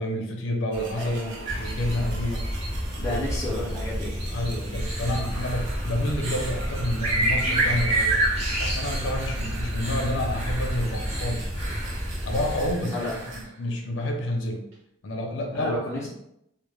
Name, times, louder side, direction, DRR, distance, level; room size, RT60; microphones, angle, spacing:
voice 1, 0.0-1.2 1.5-2.5 3.1-3.5 4.3-8.2 8.6-11.5 12.3-13.1 13.6-14.6 15.0-15.7, left 1 dB, 75° left, 3 dB, 0.5 m, -29 dB
sound 1, 0.7-13.4, right 1 dB, 65° right, 0.5 m, -39 dB
voice 2, 0.9-1.4 3.0-4.2 12.8-13.3 15.5-16.1, left 1 dB, 15° left, -6 dB, 0.4 m, -31 dB
sound 2, 1.4-12.7, right 1 dB, 30° right, 0.7 m, -28 dB
sound 3, 4.5-6.7 7.4-13.7 14.7-14.8, right 1 dB, 85° right, 1.0 m, -41 dB
2.1 x 2.0 x 3.0 m, 0.79 s
head